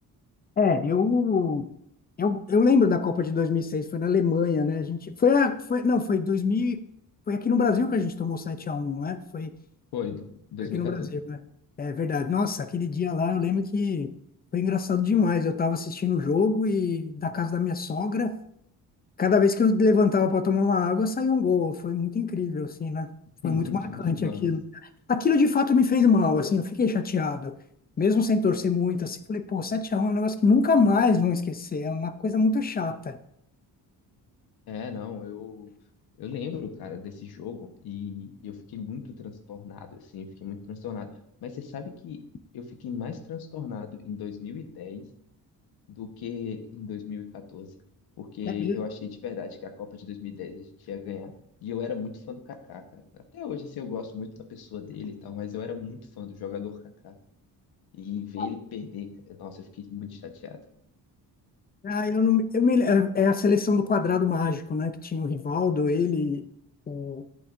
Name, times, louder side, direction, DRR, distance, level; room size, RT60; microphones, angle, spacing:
voice 1, 0.6-1.6 2.2-6.8 7.3-9.5 10.7-11.4 11.8-14.1 14.5-18.3 19.2-23.1 23.4-24.6 25.1-27.5 28.0-33.2 48.4-48.8 58.4-58.5 61.8-66.4 66.9-67.3, left 5 dB, 25° left, 11 dB, 0.5 m, -24 dB
voice 2, 9.9-11.2 23.4-24.5 34.7-35.7 36.2-41.1 41.4-42.2 42.5-45.0 45.9-47.7 48.2-51.3 51.6-56.8 57.0-57.1 57.9-60.6, left 7 dB, 75° left, 7 dB, 1.2 m, -37 dB
10.5 x 8.6 x 2.6 m, 0.72 s
cardioid pair, 155°, 38 cm